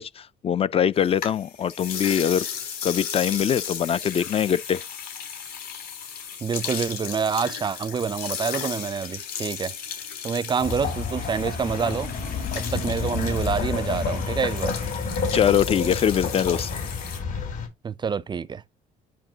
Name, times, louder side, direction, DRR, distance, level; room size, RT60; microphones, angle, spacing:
voice 1, 0.0-2.5 2.8-4.8 15.3-16.7, left 8 dB, 35° left, 0.3 m, -23 dB
sound 1, 1.0-17.2, left 7 dB, 65° left, 3.5 m, -35 dB
voice 2, 6.4-9.7 10.2-12.1 12.6-14.8 17.8-18.6, right 6 dB, 25° right, 0.4 m, -27 dB
sound 2, 10.6-17.7, left 5 dB, 50° left, 3.6 m, -29 dB
10.0 x 4.4 x 2.8 m
cardioid pair, 110°, 17 cm